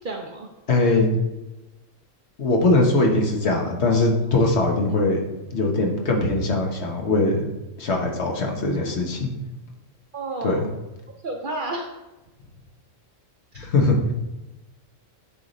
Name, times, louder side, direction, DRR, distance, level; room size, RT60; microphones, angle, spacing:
voice 1, 0.0-0.5 10.1-10.6 11.2-11.9, right 2 dB, 50° right, 2 dB, 0.7 m, -31 dB
voice 2, 0.7-1.1 2.4-5.2 5.5-7.4 7.8-9.3 10.4-10.7 13.6-14.0, left 2 dB, 60° left, 1 dB, 1.3 m, -21 dB
9.8 x 3.5 x 4.0 m, 1.0 s
omnidirectional pair, 1.3 m